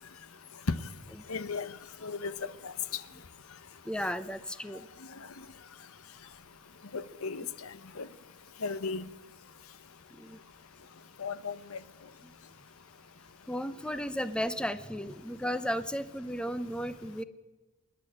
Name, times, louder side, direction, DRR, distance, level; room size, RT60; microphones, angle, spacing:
voice 1, 1.3-1.7 2.0-2.3 2.6-2.7 6.9-7.4 8.0-8.1 8.6-9.0 11.2-11.8, left 4 dB, 80° left, 0.9 m, -35 dB
voice 2, 3.8-4.9 10.1-10.4 13.5-17.2, equal, 5° left, 0.7 m, -34 dB
27.0 x 11.5 x 8.7 m
head